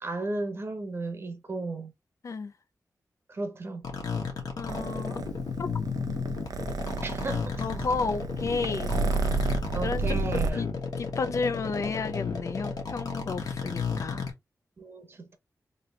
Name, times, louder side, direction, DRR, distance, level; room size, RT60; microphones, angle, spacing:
voice 1, 0.0-1.9 3.3-3.9 7.0-7.8 9.7-10.6 14.8-15.4, right 2 dB, 40° right, 1.0 m, -35 dB
sound 1, 3.8-14.3, left 5 dB, 90° left, 1.3 m, -33 dB
voice 2, 4.6-5.2 5.6-5.7 7.6-9.0 9.8-10.0 10.3-10.7 11.0-14.3, left 4 dB, 55° left, 0.4 m, -32 dB
Purr, 4.7-10.5, right 4 dB, 85° right, 0.6 m, -31 dB
3.3 x 2.9 x 3.2 m
wide cardioid pair, 150°, 6 cm